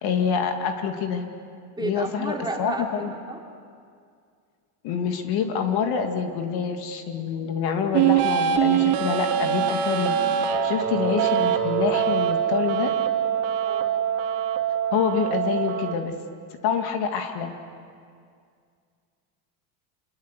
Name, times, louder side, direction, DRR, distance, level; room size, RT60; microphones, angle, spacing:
voice 1, 0.0-1.3 1.8-3.1 4.8-10.1 10.6-12.9 14.9-16.1 16.6-17.5, left 7 dB, 55° left, 5 dB, 2.4 m, -26 dB
voice 2, 1.8-3.4 13.6-13.9, right 2 dB, 10° right, 0 dB, 3.3 m, -32 dB
sound 1, 7.9-15.9, right 9 dB, 55° right, 2.5 m, -23 dB
27.5 x 22.0 x 8.3 m, 2.2 s
supercardioid pair, 130°, 47 cm